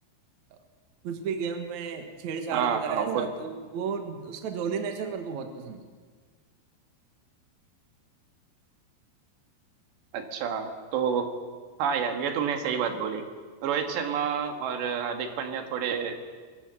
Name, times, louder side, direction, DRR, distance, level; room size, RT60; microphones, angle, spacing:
voice 1, 1.0-5.9, right 6 dB, 55° right, 5 dB, 2.4 m, -33 dB
voice 2, 2.5-3.3 10.1-11.3 11.8-13.3 13.6-16.2, right 7 dB, 80° right, 5 dB, 3.9 m, -29 dB
23.5 x 15.5 x 7.7 m, 1.5 s
omnidirectional pair, 5.0 m